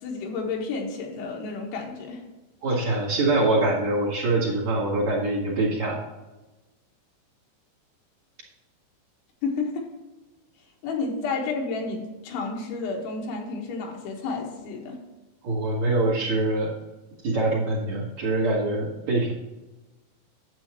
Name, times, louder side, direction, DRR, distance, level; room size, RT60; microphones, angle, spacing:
voice 1, 0.0-2.2 9.4-9.9 10.8-15.0, left 4 dB, 85° left, 0 dB, 3.9 m, -31 dB
voice 2, 2.6-6.0 15.4-16.7 17.2-19.3, right 2 dB, 50° right, -6 dB, 2.4 m, -24 dB
11.0 x 8.4 x 3.0 m, 1.1 s
omnidirectional pair, 5.3 m